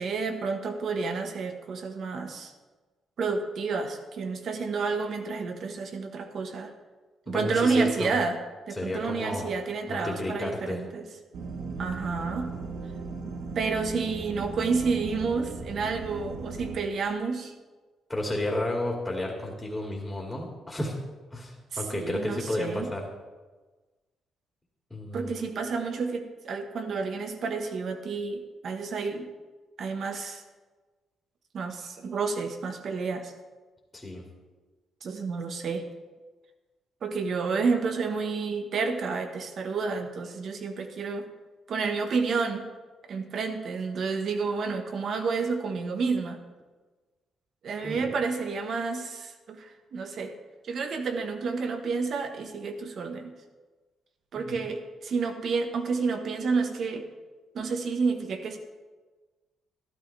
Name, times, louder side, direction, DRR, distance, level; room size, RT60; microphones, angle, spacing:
voice 1, 0.0-2.5 3.2-6.7 7.3-8.4 8.7-11.1 11.8-12.5 13.5-17.5 21.9-22.9 25.1-29.3 29.8-30.4 31.5-33.3 35.0-35.8 37.0-41.3 41.7-42.7 43.1-46.4 47.6-50.3 50.7-53.3 54.3-57.1 57.5-58.6, right 4 dB, 60° right, 6 dB, 1.4 m, -30 dB
voice 2, 7.3-8.2 8.7-9.5 9.9-10.8 18.1-21.0 21.3-23.1 24.9-25.3 33.9-34.2 47.8-48.1 54.4-54.6, left 1 dB, 15° left, -1 dB, 2.4 m, -32 dB
sound 1, 11.3-16.8, right 3 dB, 75° right, 1.5 m, -37 dB
13.0 x 12.0 x 3.4 m, 1.3 s
cardioid pair, 90°, 0 cm